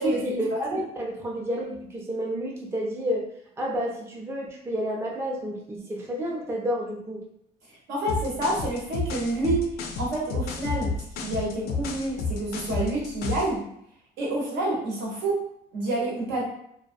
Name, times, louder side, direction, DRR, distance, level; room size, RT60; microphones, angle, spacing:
voice 1, 0.0-3.2 3.6-7.2, equal, 15° right, -2 dB, 0.5 m, -30 dB
voice 2, 7.9-9.6 10.0-10.9 11.2-13.6 14.2-15.4 15.7-16.4, right 2 dB, 80° right, -3 dB, 1.0 m, -28 dB
sound 1, 8.1-13.6, left 4 dB, 70° left, 0.4 m, -31 dB
2.3 x 2.1 x 2.6 m, 0.72 s
cardioid pair, 110°, 17 cm